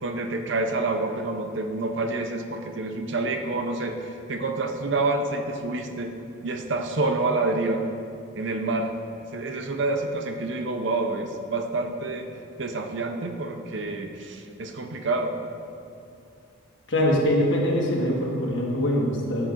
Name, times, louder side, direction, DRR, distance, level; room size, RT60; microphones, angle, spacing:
voice 1, 0.0-6.1 6.4-7.8 8.3-8.9 9.3-12.3 12.6-15.3, right 2 dB, 60° right, 5 dB, 0.7 m, -28 dB
voice 2, 16.9-19.5, equal, 60° left, -2 dB, 1.6 m, -23 dB
14.5 x 7.9 x 2.6 m, 2.5 s
head